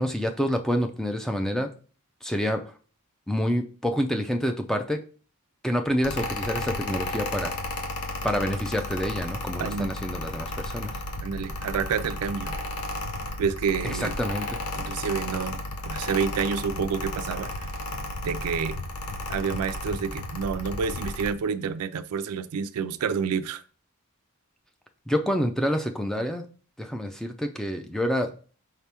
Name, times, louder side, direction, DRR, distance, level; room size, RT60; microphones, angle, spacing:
voice 1, 0.0-1.7 2.2-2.6 3.3-5.0 5.6-7.5 8.2-10.9 13.8-14.5 25.1-26.4 26.8-28.3, equal, ahead, 5 dB, 0.4 m, -27 dB
Mechanical fan, 6.0-21.3, left 2 dB, 75° left, 0.6 m, -33 dB
voice 2, 9.6-9.9 11.2-12.6 13.4-14.1 14.8-15.6 15.9-17.5 18.2-18.8 19.3-23.6, right 6 dB, 80° right, 12 dB, 0.4 m, -28 dB
4.9 x 3.4 x 2.9 m, 0.39 s
head